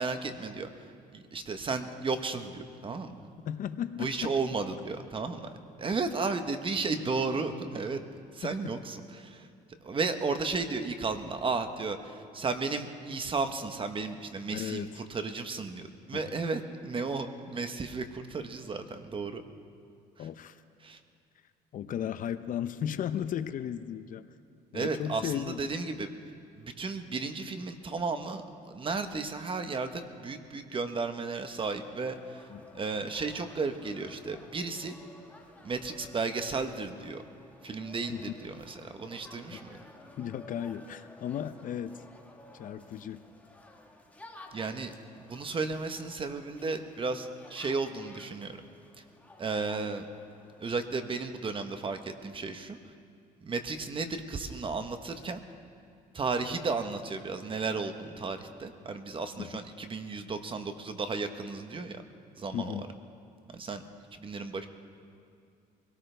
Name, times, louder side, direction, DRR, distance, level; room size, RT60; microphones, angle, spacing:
voice 1, 0.0-3.3 4.0-5.5 5.8-8.0 8.3-9.5 9.8-19.4 20.2-20.3 20.8-21.0 24.7-26.1 26.6-32.5 32.7-35.0 35.6-37.2 37.6-39.8 44.5-44.9 45.2-48.6 49.0-49.1 49.4-50.1 50.6-52.9 53.4-55.4 56.1-62.0 62.4-62.9 63.5-63.8 64.1-64.7, right 4 dB, 30° right, 8 dB, 1.1 m, -34 dB
voice 2, 3.4-4.3 8.4-8.5 14.5-14.9 16.1-16.4 20.2-20.6 21.7-24.2 24.7-25.6 32.5-32.6 38.1-38.2 39.5-39.6 40.2-42.0 42.5-43.2 59.4-59.5 62.5-62.9, left 9 dB, 55° left, 12 dB, 0.6 m, -35 dB
sound 1, 32.0-51.2, left 2 dB, 10° left, 1.5 m, -54 dB
24.0 x 18.0 x 3.4 m, 2.4 s
cardioid pair, 110°, 17 cm